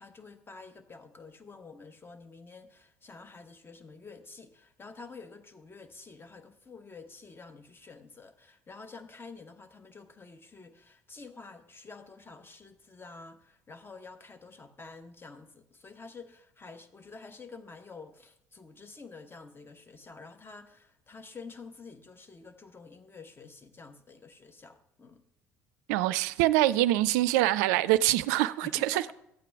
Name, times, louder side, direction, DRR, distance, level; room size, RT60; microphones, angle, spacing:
voice 1, 0.0-25.3 28.6-29.1, left 4 dB, 25° left, 1.1 m, -49 dB
voice 2, 25.9-29.0, right 15 dB, 70° right, 0.4 m, -25 dB
13.0 x 8.3 x 3.5 m
hypercardioid pair, 60°, 10 cm